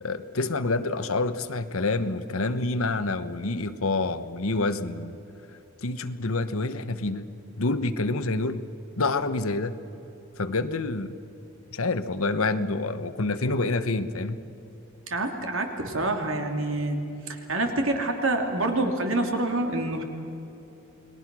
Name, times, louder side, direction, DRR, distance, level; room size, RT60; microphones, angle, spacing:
voice 1, 0.0-5.2 5.8-7.3 7.6-8.6 9.0-9.8 10.4-11.2 11.7-14.4, left 3 dB, 75° left, 11 dB, 1.2 m, -27 dB
voice 2, 15.1-17.0 17.3-20.0, right 2 dB, 65° right, 4 dB, 2.8 m, -27 dB
29.5 x 20.5 x 6.2 m, 3.0 s
head